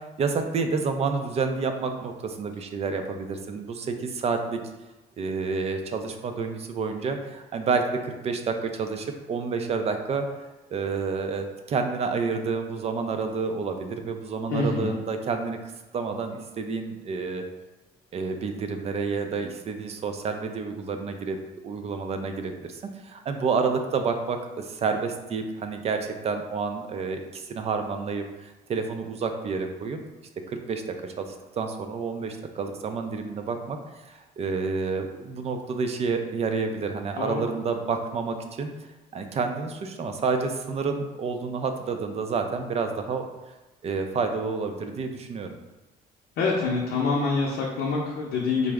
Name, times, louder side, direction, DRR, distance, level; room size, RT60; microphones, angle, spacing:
voice 1, 0.2-4.6 5.2-10.3 10.7-15.6 15.9-17.4 18.1-21.4 21.6-30.0 30.5-31.3 31.6-33.8 34.1-38.7 39.1-43.3 43.8-45.5, right 4 dB, 40° right, 6 dB, 0.4 m, -29 dB
voice 2, 14.5-14.9 37.2-37.4 46.4-48.7, left 4 dB, 75° left, -3 dB, 0.6 m, -26 dB
3.5 x 2.0 x 3.4 m, 1.1 s
cardioid pair, 110°, 17 cm